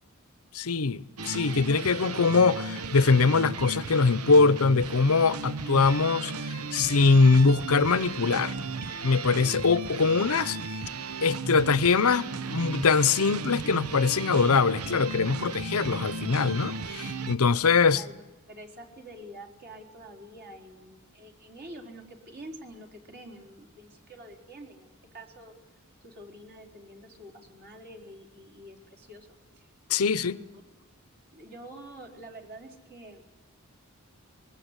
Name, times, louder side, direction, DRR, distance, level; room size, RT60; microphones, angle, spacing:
voice 1, 0.5-8.5 9.0-10.8 11.2-18.0 29.9-30.4, left 4 dB, 80° left, 0.8 m, -23 dB
sound 1, 1.2-17.3, right 3 dB, 85° right, 0.9 m, -35 dB
voice 2, 17.6-18.2 18.5-25.5 26.0-29.7 30.0-30.6 31.3-33.2, right 1 dB, 45° right, 4.1 m, -47 dB
24.5 x 21.0 x 8.2 m
head